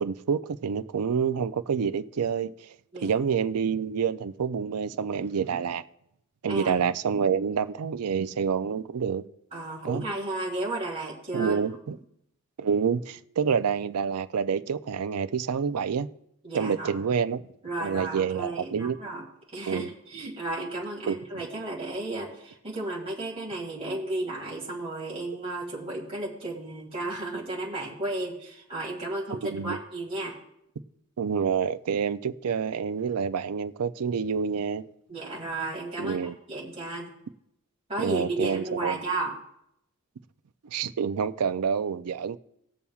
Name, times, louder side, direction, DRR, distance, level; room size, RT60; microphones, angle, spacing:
voice 1, 0.0-2.7 3.0-5.8 6.4-9.2 9.8-10.0 11.3-12.0 12.6-16.1 16.5-17.4 17.8-19.0 19.7-19.9 21.1-21.2 29.3-29.8 31.2-34.8 36.0-36.3 38.0-39.0 40.6-42.4, right 6 dB, 85° right, 0.4 m, -28 dB
voice 2, 9.5-11.5 16.4-17.0 17.6-19.3 19.5-30.4 35.1-36.2 36.5-37.1 37.9-39.3, right 2 dB, 25° right, 1.9 m, -33 dB
20.0 x 7.0 x 2.4 m
head